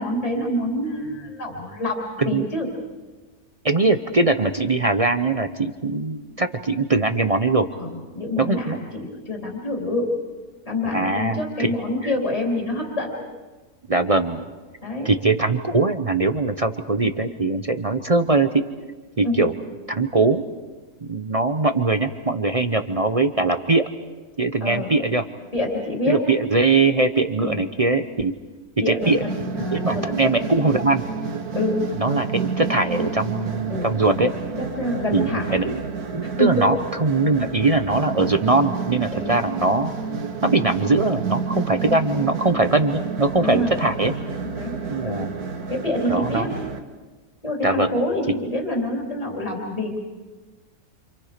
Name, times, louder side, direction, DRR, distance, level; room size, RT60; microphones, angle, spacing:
voice 1, 0.0-2.7 7.8-10.1 10.7-13.1 14.8-15.1 19.2-19.5 24.6-24.9 25.5-26.2 27.4-27.6 28.8-30.3 31.5-31.8 33.7-33.9 34.6-35.6 36.2-36.6 39.1-39.3 43.4-43.8 44.6-44.8 45.0-45.3 45.7-46.5 47.4-50.0, left 1 dB, 25° left, -1 dB, 3.3 m, -26 dB
voice 2, 3.6-7.7 8.4-8.8 10.9-11.7 13.9-14.4 15.0-18.6 19.2-19.5 19.9-20.4 21.0-23.8 24.4-25.2 26.1-28.3 28.9-29.2 29.7-31.0 32.0-34.3 35.1-35.8 36.1-39.9 40.4-44.1 44.9-45.3 46.1-46.5 47.6-48.0, right 3 dB, 30° right, 8 dB, 0.7 m, -21 dB
sound 1, 29.0-46.8, right 5 dB, 80° right, 2.1 m, -30 dB
29.0 x 27.5 x 5.1 m, 1.3 s
omnidirectional pair, 1.6 m